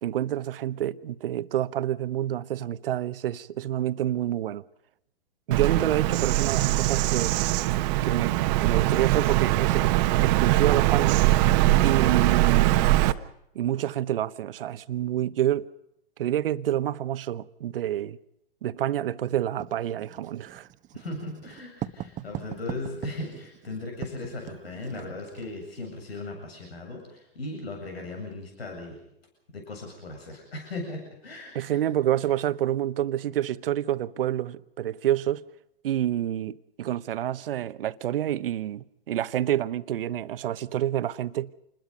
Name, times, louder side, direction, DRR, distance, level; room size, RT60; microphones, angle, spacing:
voice 1, 0.0-4.6 5.5-7.4 8.0-9.9 10.2-11.2 11.8-12.9 13.5-15.7 16.2-18.2 18.6-20.7 31.5-35.5 35.8-41.5, right 12 dB, 70° right, 1.1 m, -28 dB
Bird vocalization bird call bird song, 5.5-13.1, right 16 dB, 45° right, 1.3 m, -22 dB
Writing, 19.6-25.5, right 12 dB, 25° right, 1.2 m, -40 dB
voice 2, 20.9-29.0 29.5-31.8, left 2 dB, 85° left, 7.9 m, -37 dB
28.0 x 21.0 x 5.4 m
hypercardioid pair, 115°, 30 cm